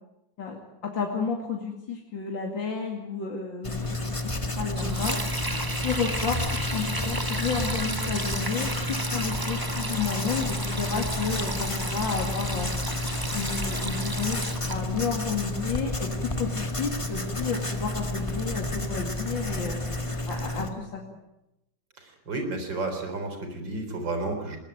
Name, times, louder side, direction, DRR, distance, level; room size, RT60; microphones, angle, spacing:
voice 1, 0.8-3.8 4.6-5.2 5.8-12.7 13.3-19.8 20.3-21.0, left 5 dB, 85° left, 1 dB, 3.1 m, -31 dB
Writing, 3.6-20.7, left 1 dB, 15° left, 1.7 m, -31 dB
Sink (filling or washing), 4.7-14.8, right 2 dB, 15° right, 1.0 m, -34 dB
voice 2, 22.0-24.6, right 2 dB, 75° right, 6 dB, 4.7 m, -32 dB
21.5 x 18.5 x 9.1 m, 0.87 s
omnidirectional pair, 2.0 m